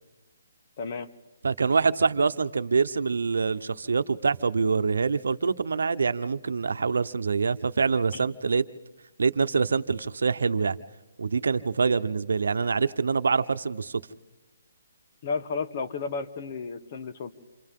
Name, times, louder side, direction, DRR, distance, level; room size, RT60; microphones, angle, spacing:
voice 1, 0.8-1.1 8.1-8.2 15.2-17.3, left 4 dB, 35° left, 9 dB, 1.3 m, -32 dB
voice 2, 1.4-8.6 9.2-10.8 11.2-14.0, right 5 dB, 80° right, 11 dB, 0.9 m, -25 dB
28.0 x 27.5 x 3.8 m, 1.1 s
hypercardioid pair, 165°, 0 cm